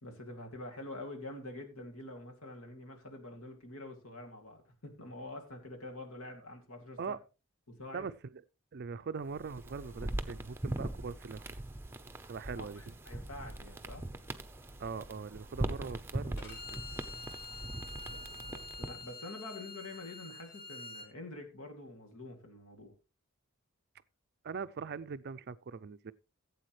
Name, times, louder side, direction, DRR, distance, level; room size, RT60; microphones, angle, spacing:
voice 1, 0.0-7.1 7.7-8.1 12.6-14.1 18.1-22.9, left 2 dB, 70° left, 2.6 m, -46 dB
voice 2, 7.9-8.4 8.7-11.4 12.3-12.8 14.8-16.8 24.4-26.1, right 5 dB, 50° right, 0.4 m, -41 dB
sound 1, 9.3-19.1, right 1 dB, 10° right, 0.7 m, -41 dB
Bowed string instrument, 16.4-21.1, left 3 dB, 50° left, 2.3 m, -47 dB
16.0 x 8.4 x 3.2 m
head